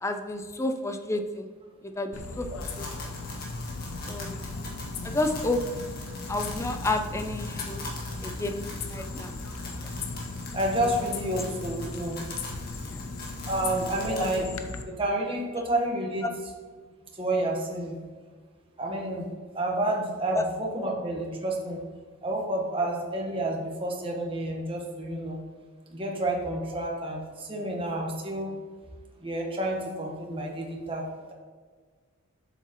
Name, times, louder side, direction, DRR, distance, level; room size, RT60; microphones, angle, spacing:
voice 1, 0.0-1.5 1.8-2.5 2.8-2.9 4.1-4.4 5.0-5.6 6.3-7.8 8.2-9.4 12.8-13.1 14.1-14.2 20.3-20.4 20.8-20.9, left 2 dB, 15° left, 6 dB, 0.4 m, -30 dB
sound 1, 2.1-14.8, left 3 dB, 85° left, 0.7 m, -37 dB
sound 2, 2.6-14.4, left 2 dB, 45° left, 1.8 m, -43 dB
voice 2, 10.5-12.2 13.5-14.5 14.8-16.2 17.2-18.0 18.8-19.3 19.5-21.8 22.2-25.4 25.9-28.5 29.2-31.0, right 1 dB, 25° right, -1 dB, 1.2 m, -29 dB
8.0 x 7.2 x 3.0 m, 1.5 s
head